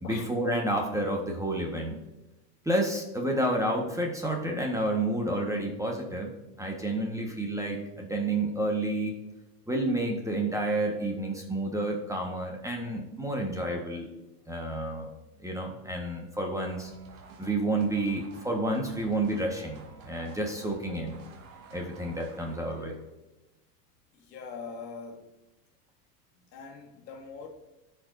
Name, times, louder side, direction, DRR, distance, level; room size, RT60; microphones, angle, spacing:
voice 1, 0.0-2.0 2.6-6.3 6.6-9.2 9.7-14.1 14.5-15.1 15.4-16.9 17.4-21.2 21.7-22.9, right 1 dB, 5° right, 0 dB, 1.4 m, -30 dB
sound 1, 16.6-23.1, right 4 dB, 60° right, 1.8 m, -51 dB
voice 2, 24.1-25.3 26.5-27.5, left 5 dB, 85° left, 1 dB, 1.9 m, -42 dB
14.0 x 5.3 x 2.7 m, 1.0 s
hypercardioid pair, 95°, 49 cm